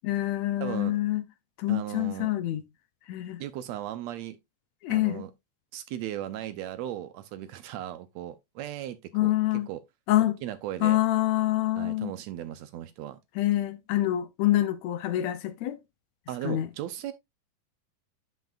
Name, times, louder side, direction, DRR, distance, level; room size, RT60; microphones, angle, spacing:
voice 1, 0.0-1.2 1.6-2.6 3.1-3.4 4.8-5.2 9.1-9.7 10.1-10.4 10.8-12.1 13.4-15.8 16.4-16.7, left 15 dB, 75° left, 1.7 m, -26 dB
voice 2, 0.6-1.0 1.7-2.3 3.4-4.4 4.9-5.3 5.7-9.8 10.4-11.0 11.8-13.2 16.3-17.1, right 12 dB, 80° right, 1.5 m, -37 dB
10.5 x 5.8 x 2.4 m
omnidirectional pair, 3.7 m